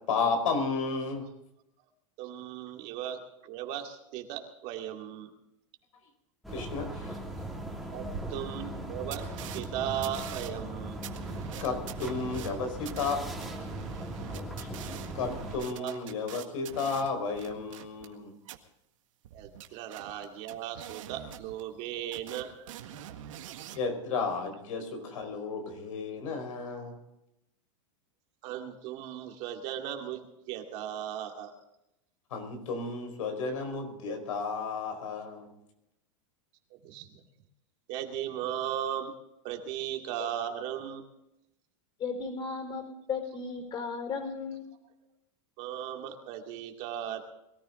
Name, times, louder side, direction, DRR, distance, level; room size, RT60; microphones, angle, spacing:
voice 1, 0.1-1.2 6.5-7.1 11.6-13.2 14.3-14.5 15.1-18.4 23.7-27.0 32.3-35.5, left 4 dB, 85° left, 5 dB, 4.7 m, -33 dB
voice 2, 2.2-5.3 7.9-9.2 9.5-11.0 15.7-16.0 19.3-23.7 28.4-31.5 36.8-37.2 37.9-39.1 39.4-41.1 45.6-47.2, right 10 dB, 45° right, 3 dB, 2.4 m, -37 dB
sound 1, 6.4-15.6, right 1 dB, ahead, 2.6 m, -39 dB
sound 2, 7.6-7.7 8.1-8.2 8.7-8.8 9.1-9.6 10.0-18.2 18.4-18.6 19.2-21.9 22.1-23.8, right 11 dB, 75° right, 1.8 m, -44 dB
voice 3, 42.0-42.8 43.1-44.6, left 5 dB, 30° left, 6 dB, 4.6 m, -35 dB
22.5 x 14.0 x 3.8 m, 0.84 s
supercardioid pair, 150°, 17 cm